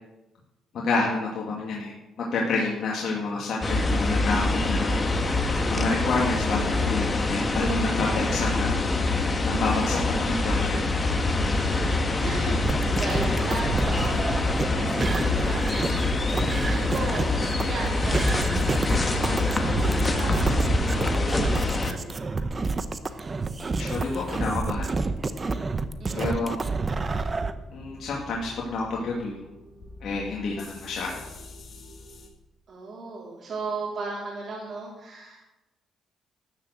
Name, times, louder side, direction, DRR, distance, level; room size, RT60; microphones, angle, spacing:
voice 1, 0.7-5.0 5.7-8.7 9.4-10.8 15.0-15.1 23.7-25.0 26.1-26.6 27.7-29.4 30.0-31.3, left 3 dB, 65° left, -3 dB, 2.3 m, -29 dB
sound 1, 3.6-21.9, left 2 dB, 30° left, 1.6 m, -25 dB
voice 2, 11.7-17.3 17.6-22.3 26.0-26.5 32.7-35.4, right 3 dB, 55° right, -5 dB, 3.3 m, -37 dB
sound 2, 12.6-27.5, right 3 dB, 30° right, 0.9 m, -29 dB
sound 3, 19.9-32.3, left 2 dB, 50° left, 2.5 m, -46 dB
13.0 x 6.7 x 7.9 m, 0.99 s
cardioid pair, 90°, 0 cm